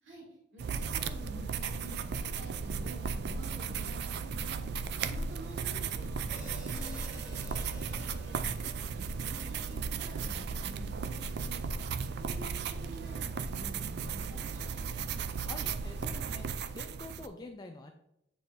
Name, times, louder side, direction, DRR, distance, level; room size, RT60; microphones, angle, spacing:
voice 1, 0.0-1.9 2.2-4.7 5.0-8.3 8.8-11.6 12.2-14.9, right 1 dB, 90° right, -2 dB, 2.3 m, -49 dB
sound 1, 0.6-17.3, right 5 dB, 60° right, 0.4 m, -36 dB
Hi-hat, 6.3-10.5, equal, 10° right, 1.5 m, -52 dB
voice 2, 15.4-16.5 16.7-17.9, left 2 dB, 20° left, 4 dB, 0.4 m, -46 dB
8.5 x 4.5 x 2.6 m, 0.78 s
head